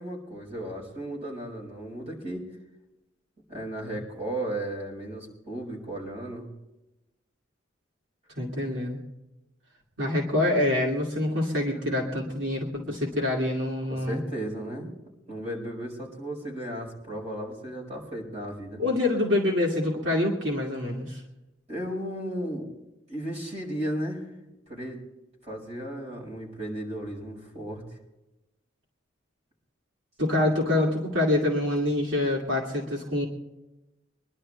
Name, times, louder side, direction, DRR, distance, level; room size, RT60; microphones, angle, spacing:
voice 1, 0.0-2.4 3.5-6.5 13.9-14.9 15.3-18.8 21.7-22.7 23.1-24.3 24.7-25.0 25.4-27.8, right 1 dB, 35° right, -1 dB, 5.5 m, -35 dB
voice 2, 8.4-9.0 10.0-14.2 18.8-21.2 30.2-33.3, left 1 dB, 75° right, -1 dB, 2.5 m, -26 dB
24.5 x 11.5 x 3.3 m, 0.98 s
head